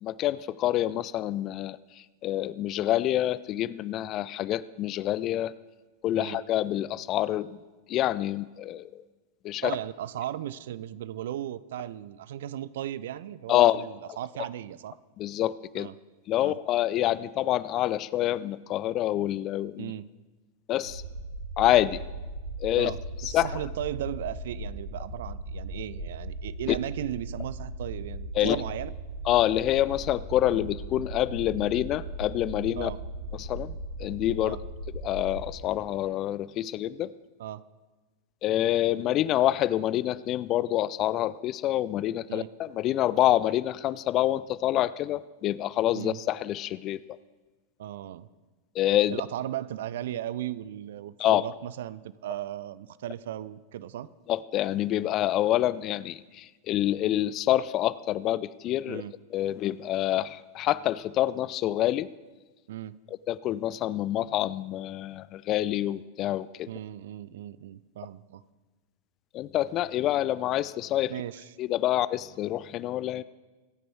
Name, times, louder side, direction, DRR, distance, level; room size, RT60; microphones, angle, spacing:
voice 1, 0.0-5.5 6.0-7.6 7.9-9.0 9.4-9.8 13.5-13.9 15.2-15.9 16.3-19.9 20.7-21.0 21.6-22.0 22.6-22.9 23.2-23.6 26.7-26.8 28.3-28.6 29.2-32.9 33.3-34.6 34.9-37.1 38.4-47.2 48.7-49.2 51.2-51.5 54.3-59.0 59.3-62.1 63.1-66.7 69.3-71.1 71.6-73.2, left 13 dB, 35° left, 19 dB, 0.4 m, -27 dB
voice 2, 9.6-15.0 15.8-15.9 16.4-16.6 19.8-20.1 22.8-23.0 23.2-28.9 32.8-33.0 34.4-34.6 37.4-37.6 42.3-42.5 45.9-46.2 47.8-48.3 49.1-54.1 58.9-59.1 62.7-63.0 66.7-68.4 71.1-71.5, right 12 dB, 55° right, 18 dB, 0.5 m, -36 dB
sound 1, 20.8-35.6, right 1 dB, 80° right, 1.6 m, -38 dB
25.0 x 9.2 x 4.6 m, 1.2 s
figure-of-eight pair, 90°, 0 cm